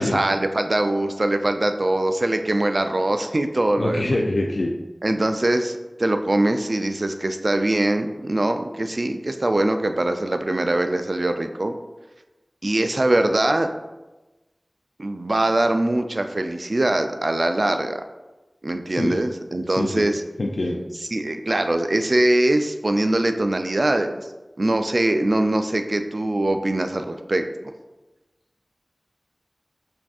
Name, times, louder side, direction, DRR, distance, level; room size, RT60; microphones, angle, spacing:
voice 1, 0.0-4.2 5.0-11.7 12.6-13.7 15.0-18.0 18.6-20.2 21.1-24.2 24.6-27.4, right 1 dB, 55° right, 7 dB, 0.3 m, -22 dB
voice 2, 3.8-4.7 18.9-19.2 19.7-20.1 20.4-20.9, left 1 dB, 85° left, -1 dB, 0.3 m, -25 dB
5.9 x 2.6 x 2.3 m, 1.1 s
wide cardioid pair, 55°, 0 cm